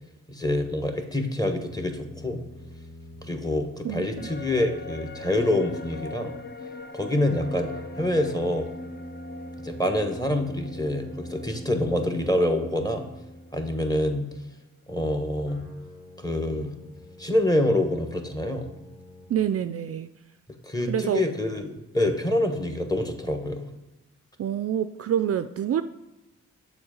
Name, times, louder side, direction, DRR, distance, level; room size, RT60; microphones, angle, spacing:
voice 1, 0.3-2.4 3.2-6.3 6.9-7.7 8.0-8.7 9.6-13.0 13.5-14.3 14.9-15.6 16.2-16.7 17.2-18.7 20.6-23.7, left 1 dB, 10° left, 5 dB, 1.3 m, -26 dB
sound 1, 1.5-5.8 7.5-13.8 15.5-19.3, equal, 70° left, 1.9 m, -43 dB
voice 2, 3.8-4.3 19.3-20.1 20.9-21.2 24.4-25.8, right 9 dB, 50° right, 11 dB, 0.4 m, -27 dB
sound 2, 4.2-13.7 14.0-14.1, left 3 dB, 30° left, 0.7 m, -42 dB
7.0 x 4.5 x 4.9 m, 0.98 s
supercardioid pair, 45°, 32 cm